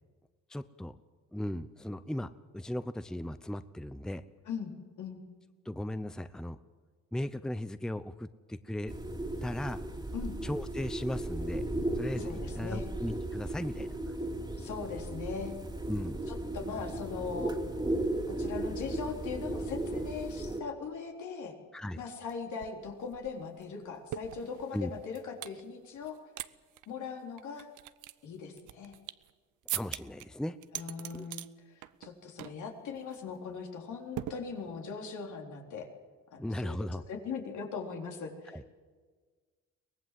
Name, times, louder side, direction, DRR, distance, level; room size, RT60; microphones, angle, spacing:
voice 1, 0.5-1.0 1.3-4.2 5.6-6.6 7.1-8.9 9.4-9.8 10.4-11.6 11.9-13.9 15.9-16.2 21.7-22.0 24.7-24.9 29.7-30.6 31.1-31.3 36.4-37.0 38.5-38.6, left 1 dB, ahead, 12 dB, 0.7 m, -37 dB
sound 1, 8.9-20.6, right 1 dB, 15° right, 2.5 m, -36 dB
voice 2, 12.2-12.9 14.6-15.5 16.3-17.5 18.3-21.5 22.0-26.2 26.9-27.7 28.2-28.9 30.7-35.9 36.3-36.8 37.1-38.7, left 5 dB, 75° left, 1 dB, 3.9 m, -40 dB
sound 2, 22.3-22.4 22.6-25.6 26.0-26.5 26.7-26.9 27.4-29.3 29.7-30.3 30.6-31.5 31.8-32.1 32.4-32.6 33.0-33.2 34.2-34.9, right 14 dB, 85° right, 0.8 m, -41 dB
23.5 x 18.5 x 7.7 m, 1.5 s
cardioid pair, 90°, 30 cm